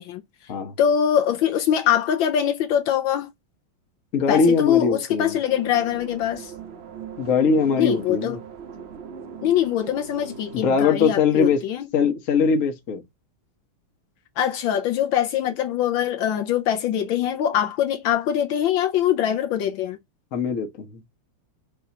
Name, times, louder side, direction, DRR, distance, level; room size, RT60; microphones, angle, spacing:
voice 1, 0.0-0.5 0.8-3.3 4.3-6.5 7.8-8.4 9.4-11.9 14.4-20.0, left 10 dB, 80° left, 1.4 m, -23 dB
voice 2, 4.1-5.4 7.2-8.4 10.5-11.6 11.9-13.0 20.3-21.0, left 5 dB, 45° left, 1.3 m, -21 dB
sound 1, 5.5-10.8, right 7 dB, 75° right, 0.5 m, -40 dB
4.9 x 3.7 x 2.9 m
omnidirectional pair, 2.2 m